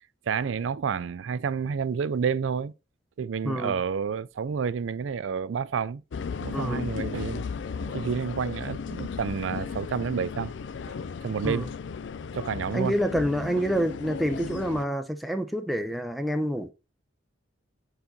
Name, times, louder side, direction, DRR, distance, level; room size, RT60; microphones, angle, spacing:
voice 1, 0.3-2.7 3.2-6.0 6.4-7.5 7.8-10.5 10.9-11.0 11.2-11.7 12.3-12.9, right 6 dB, 80° right, 0.4 m, -29 dB
sound 1, 6.1-14.8, left 5 dB, 70° left, 0.4 m, -35 dB
voice 2, 6.5-6.9 11.4-11.7 12.7-16.7, equal, ahead, 0.6 m, -27 dB
7.1 x 4.1 x 3.8 m
head